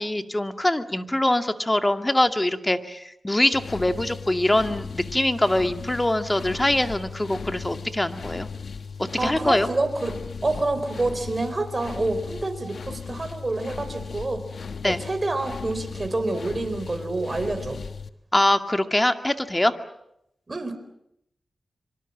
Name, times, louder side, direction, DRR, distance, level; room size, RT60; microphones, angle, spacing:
voice 1, 0.0-8.5 9.2-9.7 14.8-15.0 18.3-19.7, left 1 dB, 20° left, 7 dB, 2.1 m, -23 dB
sound 1, 3.5-18.1, left 5 dB, 75° left, 1.3 m, -37 dB
voice 2, 9.2-10.1 10.4-14.4 14.8-17.8 20.5-20.8, right 2 dB, 40° right, 9 dB, 4.5 m, -27 dB
26.5 x 24.5 x 7.4 m, 0.79 s
cardioid pair, 45°, 0 cm